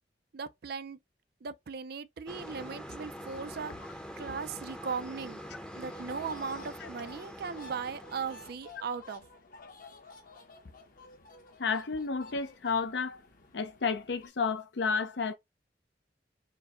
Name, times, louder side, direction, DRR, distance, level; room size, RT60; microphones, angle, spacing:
voice 1, 0.3-1.0 1.4-3.7 4.2-5.4 5.7-9.2, right 5 dB, 60° right, 0.4 m, -38 dB
sound 1, 2.3-8.5, equal, 5° left, 0.6 m, -44 dB
sound 2, 5.8-14.3, left 2 dB, 50° left, 0.9 m, -52 dB
voice 2, 11.6-13.2 13.5-15.3, left 5 dB, 75° left, 0.6 m, -31 dB
4.6 x 2.1 x 3.6 m
head